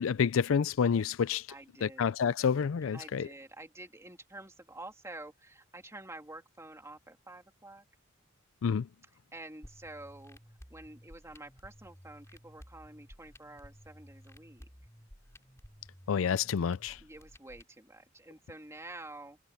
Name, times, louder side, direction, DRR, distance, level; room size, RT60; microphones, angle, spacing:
voice 1, 0.0-1.4 1.8-3.3 8.6-8.9 16.1-17.0, left 6 dB, 75° left, 0.4 m, -28 dB
voice 2, 1.5-2.1 2.9-7.8 9.3-10.4 10.7-14.7 17.0-19.4, right 2 dB, 15° right, 3.1 m, -49 dB
sound 1, 9.6-17.6, equal, 15° left, 3.7 m, -55 dB
head